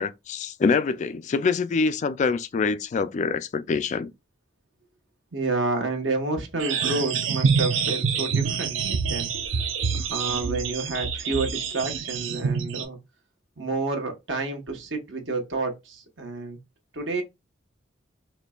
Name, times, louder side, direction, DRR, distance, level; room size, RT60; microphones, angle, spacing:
voice 1, 0.0-4.1, left 4 dB, 40° left, 0.3 m, -25 dB
voice 2, 5.3-9.3 9.9-13.0 13.6-16.6 16.9-17.2, right 3 dB, 70° right, 1.2 m, -29 dB
sound 1, 6.6-12.8, right 6 dB, 85° right, 0.6 m, -26 dB
4.2 x 3.1 x 2.3 m
head